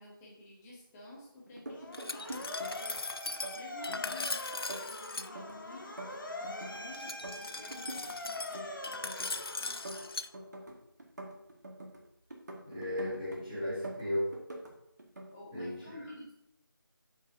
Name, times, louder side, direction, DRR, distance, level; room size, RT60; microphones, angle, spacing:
voice 1, 0.0-10.1 15.3-16.3, left 1 dB, 5° left, -7 dB, 0.7 m, -51 dB
sound 1, 1.5-3.0 3.3-4.3 4.5-6.8 7.1-8.1 8.4-9.4 9.7-12.0 12.3-13.4 13.7-14.7 15.0-15.3, right 1 dB, 50° right, 1.5 m, -45 dB
Motor vehicle (road) / Siren, 1.7-10.3, left 2 dB, 60° left, 1.4 m, -43 dB
Glass, 1.9-5.3 6.9-10.3, left 3 dB, 85° left, 0.4 m, -40 dB
voice 2, 12.6-14.4 15.5-15.8, left 1 dB, 20° right, -14 dB, 3.0 m, -35 dB
11.0 x 5.4 x 2.7 m, 0.80 s
figure-of-eight pair, 165°, 12 cm